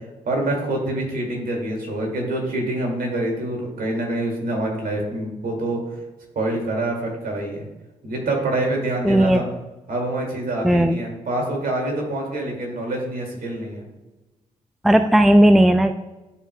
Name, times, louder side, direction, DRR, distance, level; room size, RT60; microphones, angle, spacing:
voice 1, 0.3-5.8 6.4-7.6 8.0-9.5 9.9-13.8, right 1 dB, 60° right, 0 dB, 2.3 m, -26 dB
voice 2, 9.0-9.4 10.6-11.0 14.8-15.9, right 1 dB, ahead, 9 dB, 0.4 m, -15 dB
11.0 x 4.8 x 2.2 m, 1.1 s
hypercardioid pair, 45°, 17 cm